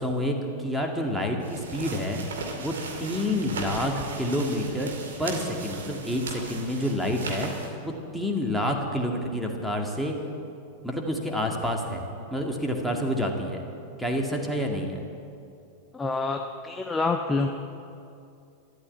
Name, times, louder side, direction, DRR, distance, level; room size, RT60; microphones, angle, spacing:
voice 1, 0.0-2.2 2.6-10.2 10.8-12.0 12.3-13.6 14.0-15.0, left 1 dB, ahead, 1 dB, 2.2 m, -28 dB
sound 1, 1.4-7.7, right 3 dB, 65° right, 2.5 m, -37 dB
voice 2, 15.9-17.5, left 3 dB, 15° left, 4 dB, 0.9 m, -27 dB
13.5 x 12.0 x 8.5 m, 2.5 s
figure-of-eight pair, 90°, 0 cm